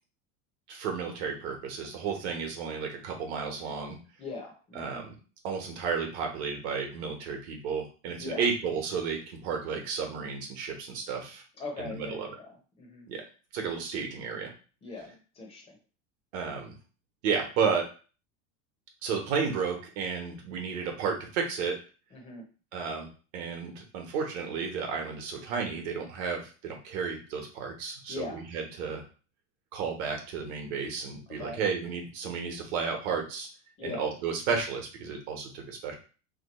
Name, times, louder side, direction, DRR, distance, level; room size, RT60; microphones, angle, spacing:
voice 1, 0.7-4.0 4.7-5.1 5.4-11.4 11.8-12.3 13.1-13.2 13.5-14.5 15.0-15.1 16.3-16.7 17.2-17.9 19.0-21.8 22.7-23.1 23.3-29.0 29.7-33.5 33.8-35.9, right 5 dB, 55° right, 2 dB, 1.1 m, -32 dB
voice 2, 4.2-5.0 8.2-8.4 11.6-12.5 12.8-13.0 14.8-15.8 22.1-22.4 28.1-28.4 31.4-31.6 33.8-34.0, left 3 dB, 15° left, 0 dB, 0.6 m, -40 dB
3.0 x 2.3 x 4.1 m, 0.36 s
supercardioid pair, 175°, 39 cm